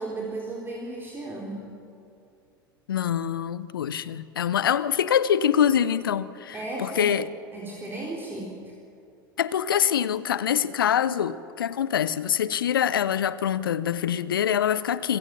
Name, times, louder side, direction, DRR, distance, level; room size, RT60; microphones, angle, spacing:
voice 1, 0.0-1.6 6.5-7.1 7.5-8.7, right 2 dB, 20° right, -3 dB, 4.0 m, -35 dB
voice 2, 2.9-7.3 9.4-15.2, left 9 dB, 70° left, 17 dB, 0.7 m, -24 dB
26.5 x 16.5 x 6.8 m, 2.6 s
figure-of-eight pair, 80°, 12 cm